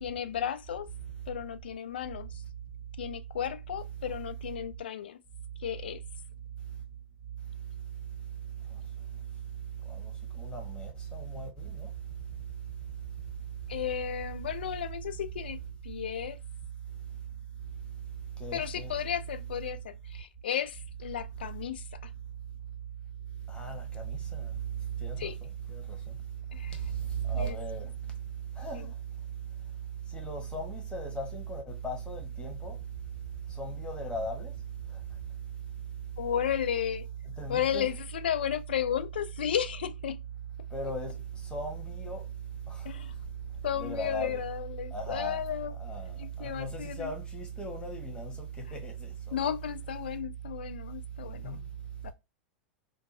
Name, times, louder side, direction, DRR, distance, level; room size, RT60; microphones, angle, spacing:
voice 1, 0.0-0.9 1.3-2.4 3.0-5.2 5.6-6.0 13.7-15.6 15.8-16.4 18.5-22.1 25.2-25.4 26.5-26.8 27.3-27.6 28.7-28.9 36.2-37.1 37.5-40.2 42.8-43.1 43.6-45.8 46.2-47.1 49.3-51.6 52.0-52.1, left 9 dB, 70° left, 0.4 m, -34 dB
voice 2, 9.8-11.9 18.4-18.9 23.5-24.5 25.0-25.3 25.7-26.2 26.7-27.9 28.6-28.9 30.1-32.8 33.5-34.5 34.9-35.0 37.4-37.9 40.7-42.3 42.7-42.9 43.8-44.4 44.9-45.4 45.8-49.1 51.2-51.6, right 3 dB, 20° left, 1.3 m, -36 dB
3.7 x 2.3 x 2.6 m
figure-of-eight pair, 90°, 6 cm